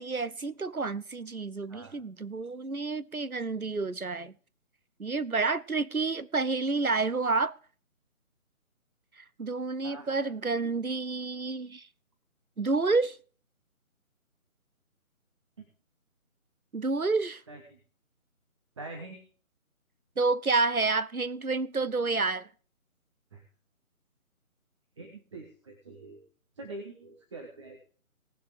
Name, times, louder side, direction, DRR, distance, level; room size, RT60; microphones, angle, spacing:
voice 1, 0.0-4.3 5.0-7.6 9.2-11.9 12.6-13.2 16.7-17.4 20.2-22.5, right 3 dB, 85° right, 1.1 m, -29 dB
voice 2, 9.8-10.3 17.5-17.8 18.8-19.2 23.3-23.4 25.0-26.2 26.6-27.8, right 2 dB, 20° right, 1.5 m, -44 dB
18.5 x 7.3 x 5.0 m
figure-of-eight pair, 150°, 42 cm